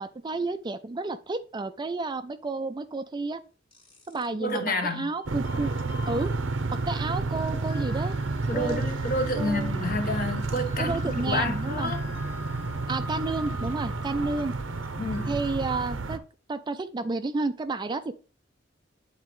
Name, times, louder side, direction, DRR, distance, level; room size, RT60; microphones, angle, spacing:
voice 1, 0.0-3.4 4.1-5.7 6.1-6.3 6.7-8.1 8.5-8.8 9.4-9.7 10.8-11.9 12.9-14.5 15.3-16.2 16.5-18.1, right 3 dB, 25° right, 0.4 m, -31 dB
sound 1, 3.7-4.3 4.7-15.5, left 2 dB, 25° left, 1.6 m, -46 dB
voice 2, 4.4-5.1 8.5-12.0 15.0-15.4, left 1 dB, 50° left, 1.1 m, -29 dB
sound 2, 5.3-16.2, right 3 dB, 80° right, 0.7 m, -30 dB
9.5 x 4.0 x 3.1 m
head